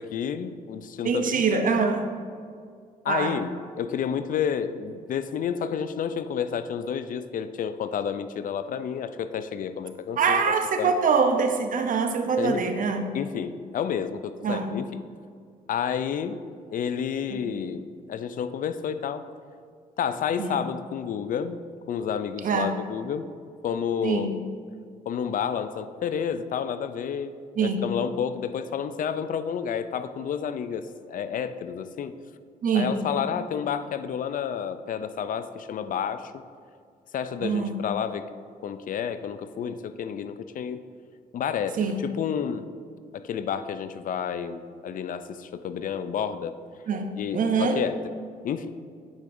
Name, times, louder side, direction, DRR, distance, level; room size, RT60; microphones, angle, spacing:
voice 1, 0.0-1.6 3.0-11.0 12.4-12.6 13.1-14.8 15.7-16.4 16.7-19.2 20.0-21.6 21.9-23.3 23.6-24.4 25.1-27.3 27.6-32.1 32.7-36.4 37.1-38.3 38.6-40.8 41.3-42.7 43.1-46.5 47.2-48.0 48.4-48.7, left 7 dB, 60° left, 12 dB, 0.4 m, -30 dB
voice 2, 1.0-2.0 3.1-3.4 10.2-13.1 14.4-14.7 17.5-17.6 20.4-20.5 22.4-22.7 24.0-24.3 27.6-27.9 32.6-33.0 37.4-37.8 41.8-42.0 46.9-47.8, right 5 dB, 55° right, 6 dB, 0.7 m, -24 dB
9.5 x 5.0 x 2.6 m, 2.2 s
supercardioid pair, 65°, 16 cm